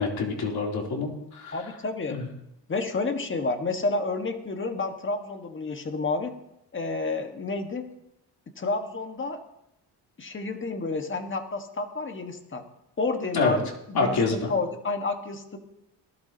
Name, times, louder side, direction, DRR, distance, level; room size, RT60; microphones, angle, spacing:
voice 1, 0.0-1.6 2.1-2.2 13.3-13.6 13.9-14.5, left 4 dB, 60° left, -1 dB, 3.5 m, -26 dB
voice 2, 1.5-2.2 2.7-6.3 6.7-7.9 8.6-9.4 10.2-12.6 13.0-13.6 13.9-15.6, left 3 dB, 30° left, 5 dB, 1.6 m, -30 dB
19.5 x 12.0 x 2.9 m, 0.81 s
cardioid pair, 95°, 43 cm